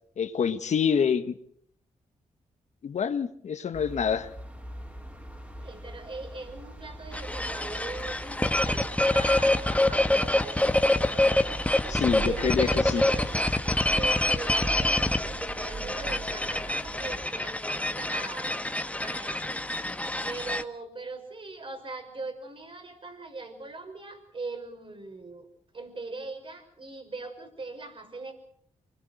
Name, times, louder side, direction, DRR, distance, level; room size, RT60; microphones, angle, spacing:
voice 1, 0.2-1.3 2.8-4.3 11.9-13.0, left 7 dB, 65° left, 10 dB, 1.6 m, -26 dB
sound 1, 3.7-17.3, right 2 dB, 15° right, 4.5 m, -41 dB
voice 2, 5.6-13.4 13.9-18.6 19.0-19.6 20.2-25.5 25.7-28.3, right 3 dB, 45° right, 6 dB, 6.1 m, -40 dB
sound 2, 7.1-20.6, left 1 dB, 10° left, 1.5 m, -26 dB
25.5 x 20.5 x 6.5 m, 0.65 s
cardioid pair, 65°, 13 cm